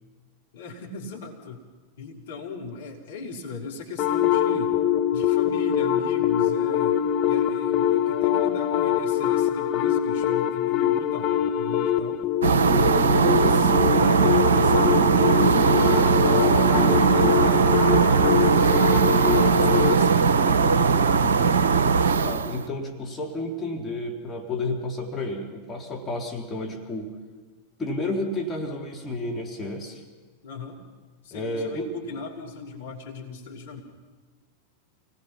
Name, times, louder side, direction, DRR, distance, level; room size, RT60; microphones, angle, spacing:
voice 1, 0.5-1.6 2.0-4.7 5.1-7.0 7.3-12.3 12.9-19.2 19.6-21.6 30.4-30.8 31.2-33.8, left 4 dB, 60° left, 1 dB, 3.6 m, -37 dB
sound 1, 4.0-20.0, left 10 dB, 35° left, 1.2 m, -24 dB
sound 2, 12.4-22.7, right 5 dB, 65° right, 0.8 m, -19 dB
voice 2, 22.2-27.1 27.8-30.0 31.3-32.2, left 2 dB, 20° left, 0 dB, 3.1 m, -31 dB
28.5 x 19.0 x 5.8 m, 1.4 s
figure-of-eight pair, 90°, 0 cm